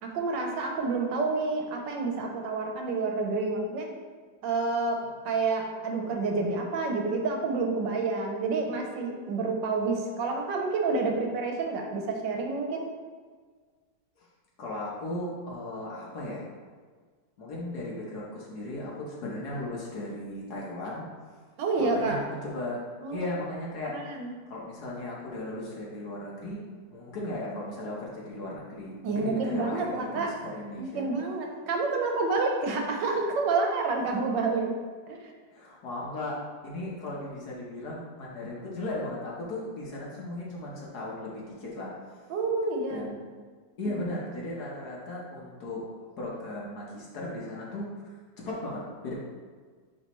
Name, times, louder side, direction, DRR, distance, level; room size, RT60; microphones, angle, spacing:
voice 1, 0.0-3.9 4.4-12.9 21.6-22.2 23.0-23.3 23.9-24.3 29.0-30.3 30.8-34.7 35.1-35.3 42.3-43.1 43.8-44.0, right 3 dB, 85° right, 2 dB, 1.5 m, -29 dB
voice 2, 14.6-16.4 17.4-21.4 21.8-22.8 23.1-24.0 24.5-31.1 35.5-42.3 42.9-43.3 43.8-45.8 46.2-48.1 48.4-49.1, left 1 dB, 65° left, -4 dB, 1.5 m, -36 dB
9.1 x 3.3 x 3.0 m, 1.5 s
omnidirectional pair, 1.9 m